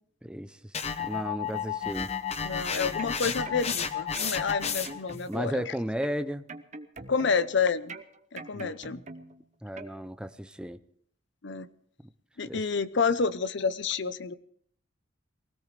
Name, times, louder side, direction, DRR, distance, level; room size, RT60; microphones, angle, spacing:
voice 1, 0.2-0.7 1.0-2.1 5.3-6.4 8.5-8.7 9.6-10.8 12.4-12.6, equal, 5° right, 11 dB, 0.6 m, -34 dB
sound 1, 0.7-5.1, left 7 dB, 35° left, 1.0 m, -32 dB
voice 2, 2.4-5.6 7.1-7.9 8.3-9.0 11.4-11.7 12.4-14.4, left 5 dB, 65° left, 14 dB, 0.7 m, -29 dB
sound 2, 2.7-3.8 4.1-5.7 6.0-7.5 7.9-9.4 9.8-9.9, right 3 dB, 40° right, 1.0 m, -44 dB
23.5 x 17.0 x 3.3 m, 0.62 s
head